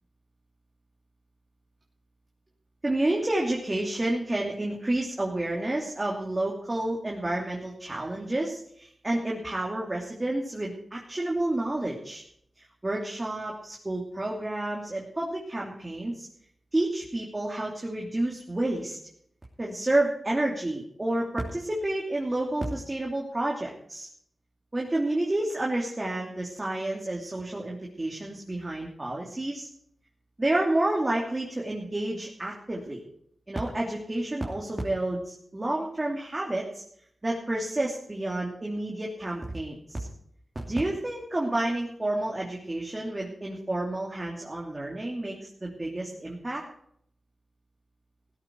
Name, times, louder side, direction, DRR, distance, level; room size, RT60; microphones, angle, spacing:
voice 1, 2.8-12.2 12.6-16.3 16.7-19.0 19.6-24.1 24.7-29.7 30.4-33.0 33.5-36.8 37.2-40.1 40.7-46.6, right 1 dB, 30° right, -2 dB, 3.1 m, -30 dB
16.5 x 12.5 x 4.7 m, 0.68 s
cardioid pair, 55°, 0 cm